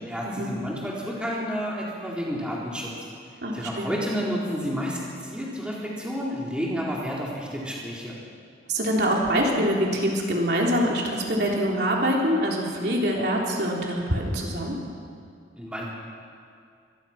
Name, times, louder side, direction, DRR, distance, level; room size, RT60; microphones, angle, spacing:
voice 1, 0.1-2.9 3.5-8.2 15.6-15.9, equal, 5° right, -5 dB, 3.9 m, -30 dB
voice 2, 3.4-4.0 8.7-14.8, equal, 60° right, -2 dB, 3.7 m, -24 dB
25.0 x 21.0 x 6.0 m, 2.3 s
head